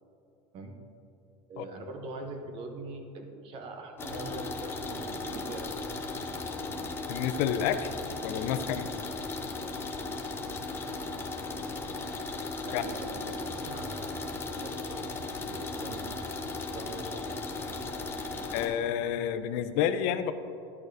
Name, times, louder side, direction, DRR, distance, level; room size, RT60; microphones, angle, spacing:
voice 1, 1.5-5.7 12.6-15.0 15.5-16.0 16.7-17.2, right 2 dB, 45° right, 4 dB, 0.7 m, -42 dB
sound 1, 4.0-18.7, left 3 dB, 20° left, 0.6 m, -36 dB
voice 2, 7.1-7.9 8.2-8.9 12.7-12.8 18.5-20.3, left 9 dB, 70° left, 11 dB, 0.4 m, -29 dB
10.5 x 6.3 x 2.6 m, 2.7 s
cardioid pair, 145°, 13 cm